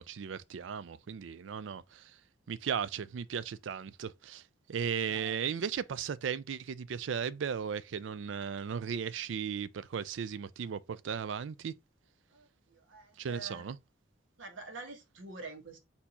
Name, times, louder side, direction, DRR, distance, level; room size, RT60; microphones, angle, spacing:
voice 1, 0.0-2.1 2.5-4.4 4.7-11.7 13.2-13.8, right 7 dB, 75° right, 0.4 m, -36 dB
voice 2, 5.1-5.6 12.3-13.7 14.4-15.8, right 3 dB, 90° right, 1.3 m, -47 dB
4.4 x 2.7 x 4.1 m
head